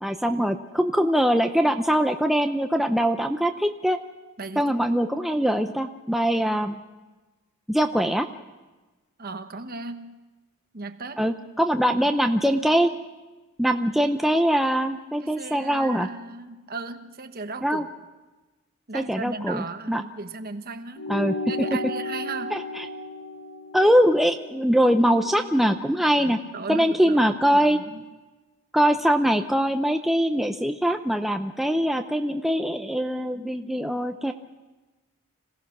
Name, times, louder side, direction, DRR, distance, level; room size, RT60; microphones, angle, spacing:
voice 1, 0.0-4.0 4.6-6.8 7.7-8.3 11.2-12.9 13.6-16.1 17.6-17.8 18.9-20.0 21.1-21.3 22.5-22.8 23.7-26.4 26.7-27.8 28.7-34.3, equal, ahead, 5 dB, 0.6 m, -22 dB
voice 2, 4.4-4.7 9.2-10.2 10.7-11.3 15.2-17.9 18.9-21.1 21.5-22.6 26.1-27.2 27.5-28.0, right 3 dB, 45° right, 7 dB, 1.2 m, -36 dB
sound 1, 21.0-25.8, left 2 dB, 75° left, 2.2 m, -35 dB
26.5 x 17.0 x 6.0 m, 1.2 s
head